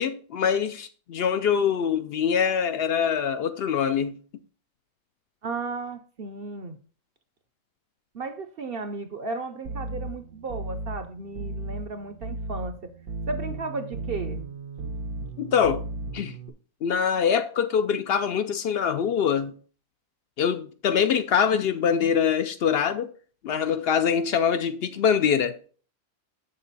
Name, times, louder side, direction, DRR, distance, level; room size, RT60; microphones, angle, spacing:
voice 1, 0.0-4.1 15.4-15.8 16.1-16.4 16.8-19.5 20.4-23.1 23.4-25.6, left 7 dB, 65° left, 0.6 m, -24 dB
voice 2, 5.4-6.8 8.1-12.8 13.3-14.4, right 3 dB, 55° right, 0.7 m, -34 dB
sound 1, 9.6-16.5, right 2 dB, 85° right, 1.3 m, -35 dB
7.4 x 6.7 x 4.0 m
omnidirectional pair, 1.5 m